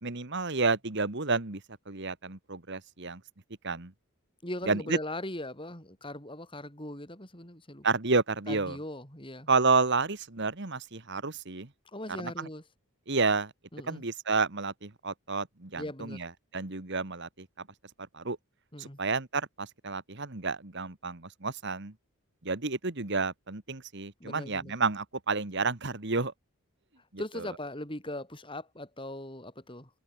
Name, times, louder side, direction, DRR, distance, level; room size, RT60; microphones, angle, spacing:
voice 1, 0.0-1.6 1.9-3.2 3.6-3.9 4.7-5.0 7.8-8.8 9.5-11.7 12.2-12.5 13.1-13.5 13.9-17.3 18.1-18.4 18.8-21.9 22.4-26.3, right 4 dB, 50° right, 1.7 m, -30 dB
voice 2, 4.4-7.9 8.5-9.5 11.9-12.6 13.7-14.0 15.8-16.2 18.7-19.0 24.2-24.7 27.2-29.9, left 1 dB, 25° left, 5.9 m, -39 dB
open air
head